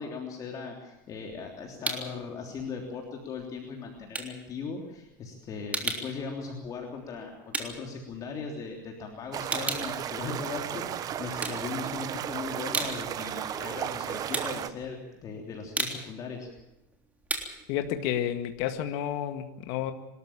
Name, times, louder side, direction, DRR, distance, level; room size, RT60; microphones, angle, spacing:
voice 1, 0.0-16.5, left 5 dB, 40° left, 1 dB, 3.4 m, -38 dB
sound 1, 1.0-2.2 2.6-8.8 9.1-10.9 11.3-12.2 12.5-19.2, right 3 dB, 15° right, 3.4 m, -36 dB
sound 2, 9.3-14.7, right 10 dB, 40° right, 1.2 m, -34 dB
voice 2, 17.7-19.9, left 10 dB, 65° left, 7 dB, 1.8 m, -30 dB
25.0 x 13.5 x 8.9 m, 0.91 s
supercardioid pair, 115°, 10 cm